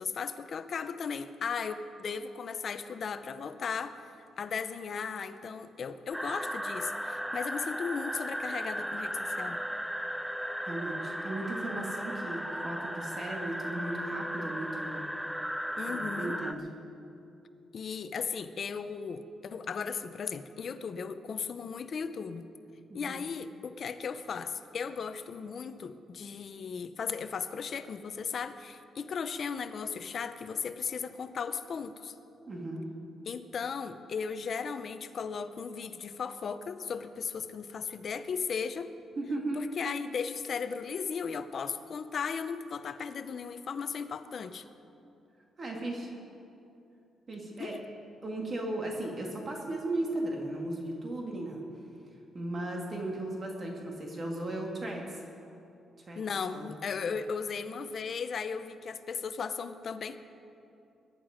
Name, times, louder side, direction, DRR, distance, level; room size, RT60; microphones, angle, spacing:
voice 1, 0.0-4.0 4.4-9.6 15.8-16.4 17.7-22.5 22.9-32.1 33.3-38.9 39.5-44.6 47.6-47.8 56.2-60.2, left 6 dB, 45° left, 11 dB, 0.7 m, -36 dB
sound 1, 6.1-16.5, equal, ahead, 0.5 m, -36 dB
voice 2, 10.7-15.0 15.9-16.6 22.9-23.2 32.5-32.9 39.2-39.6 45.6-46.1 47.3-47.7 48.2-51.6 52.3-55.2 56.1-56.2 56.5-56.7, right 1 dB, 35° right, 0 dB, 2.1 m, -36 dB
22.0 x 10.5 x 5.1 m, 2.7 s
cardioid pair, 135°, 0 cm